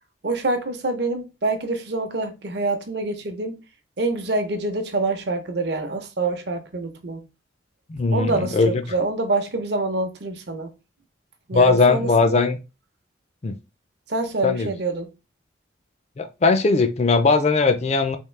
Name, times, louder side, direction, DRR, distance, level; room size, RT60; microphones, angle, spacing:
voice 1, 0.2-3.6 4.0-7.3 8.1-10.7 11.5-12.5 14.1-15.1, right 2 dB, 60° right, 0.7 m, -26 dB
voice 2, 7.9-8.8 11.5-12.6 13.4-13.5 14.4-14.7 16.2-18.2, left 4 dB, 35° left, 0.4 m, -19 dB
3.5 x 2.6 x 3.2 m
head